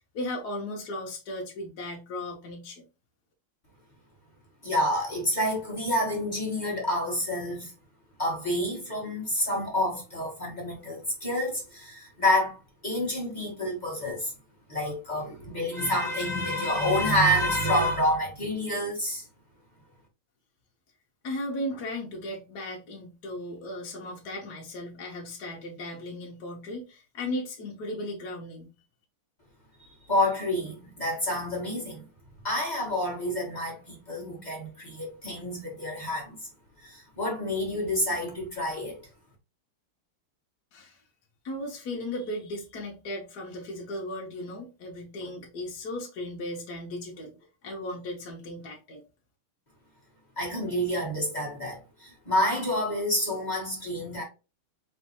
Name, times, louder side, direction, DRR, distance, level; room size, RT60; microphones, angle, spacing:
voice 1, 0.1-2.8 21.2-28.7 40.7-41.0 41.4-47.4 47.6-49.0, left 1 dB, 55° left, 1.3 m, -36 dB
voice 2, 4.6-7.7 8.2-14.3 14.7-19.3 29.8-32.0 32.4-36.5 36.8-39.0 50.4-54.2, left 1 dB, 25° left, 1.2 m, -28 dB
4.6 x 3.2 x 3.0 m
omnidirectional pair, 2.4 m